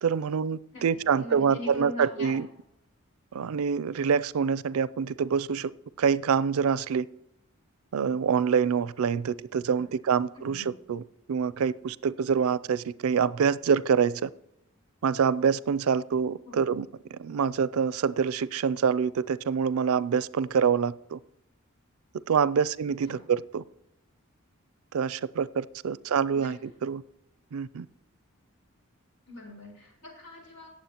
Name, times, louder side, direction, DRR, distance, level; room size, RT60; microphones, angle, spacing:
voice 1, 0.0-2.5 3.3-5.7 6.0-7.1 7.9-11.0 11.3-14.3 15.0-21.2 22.3-23.6 24.9-27.0 27.5-27.9, right 6 dB, 85° right, 19 dB, 0.4 m, -26 dB
voice 2, 1.2-2.3 9.7-9.8 10.4-10.7 16.5-16.6 23.1-23.2 26.4-26.6 29.3-30.7, left 1 dB, 85° left, -2 dB, 4.7 m, -42 dB
18.0 x 7.4 x 2.9 m, 0.81 s
head